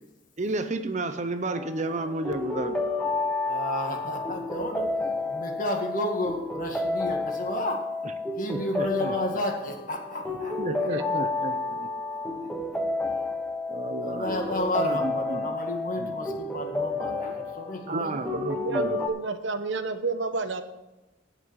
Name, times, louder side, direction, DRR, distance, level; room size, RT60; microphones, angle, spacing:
voice 1, 0.4-2.8 8.4-9.1 10.6-11.9 13.7-14.5 14.8-15.4 16.0-16.1 17.9-19.0, right 2 dB, 35° right, 9 dB, 0.7 m, -32 dB
sound 1, 1.5-19.1, left 2 dB, 5° left, 1.0 m, -31 dB
voice 2, 3.5-5.0 5.3-7.9 8.4-11.2 11.5-12.8 14.0-18.3, left 1 dB, 45° left, 2 dB, 2.0 m, -32 dB
voice 3, 10.9-11.2 17.9-20.6, right 3 dB, 75° right, 8 dB, 1.0 m, -31 dB
18.0 x 6.0 x 4.7 m, 1.0 s
head